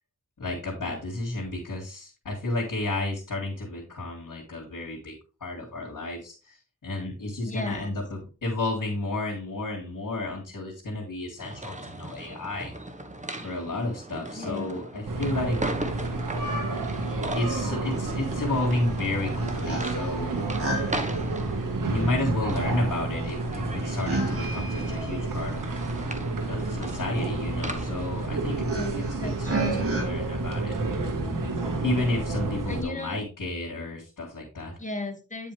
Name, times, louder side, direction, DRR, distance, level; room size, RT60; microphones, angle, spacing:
voice 1, 0.4-5.1 5.4-12.7 13.4-15.6 17.3-20.3 21.8-25.7 26.4-28.8 29.2-30.8 31.8-34.7, left 2 dB, 80° left, -4 dB, 2.4 m, -32 dB
voice 2, 7.5-7.9 14.3-14.7 28.7-29.9 31.0-31.5 32.7-33.2 34.8-35.5, left 2 dB, 25° left, 4 dB, 2.1 m, -36 dB
sound 1, 11.4-28.2, right 1 dB, 25° right, 1.3 m, -39 dB
sound 2, 15.1-32.8, right 2 dB, 80° right, 1.7 m, -30 dB
sound 3, 17.8-30.0, right 2 dB, 45° right, 2.8 m, -36 dB
9.4 x 5.4 x 3.4 m, 0.34 s
cardioid pair, 55°, 32 cm